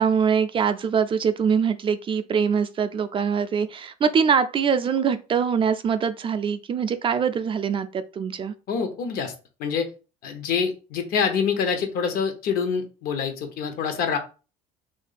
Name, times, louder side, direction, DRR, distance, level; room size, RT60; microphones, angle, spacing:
voice 1, 0.0-8.5, right 6 dB, 30° right, 0.4 m, -23 dB
voice 2, 8.7-9.3 9.6-9.9 10.2-14.2, left 6 dB, 60° left, 0.9 m, -26 dB
2.7 x 2.6 x 4.0 m
supercardioid pair, 95°, 17 cm